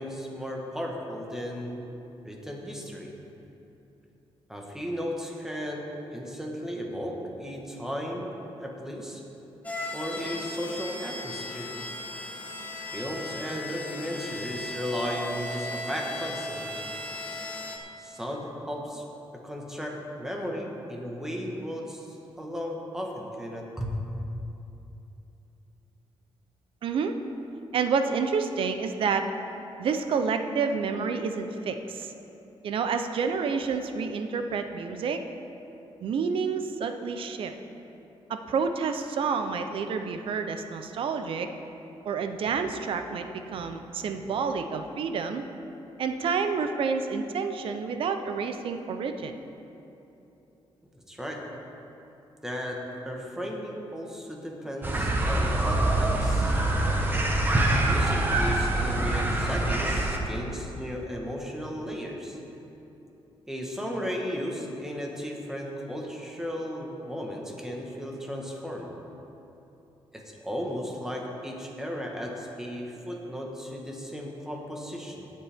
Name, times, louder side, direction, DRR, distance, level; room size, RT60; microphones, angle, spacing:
voice 1, 0.0-1.9 2.2-3.1 4.5-8.3 8.6-9.2 9.9-11.7 12.9-16.9 18.0-23.9 50.9-51.5 52.4-56.6 57.8-62.4 63.5-69.0 70.1-75.3, equal, 5° right, 0 dB, 1.3 m, -35 dB
sound 1, 9.6-17.8, left 1 dB, 15° left, 1.0 m, -37 dB
voice 2, 26.8-27.2 27.7-29.3 29.8-32.1 32.6-35.2 36.0-37.5 38.3-41.5 42.0-45.4 46.0-49.4, right 5 dB, 65° right, 7 dB, 0.7 m, -29 dB
sound 2, 54.8-60.2, right 1 dB, 20° right, 1.0 m, -25 dB
17.5 x 7.6 x 3.5 m, 2.9 s
wide cardioid pair, 150°, 10 cm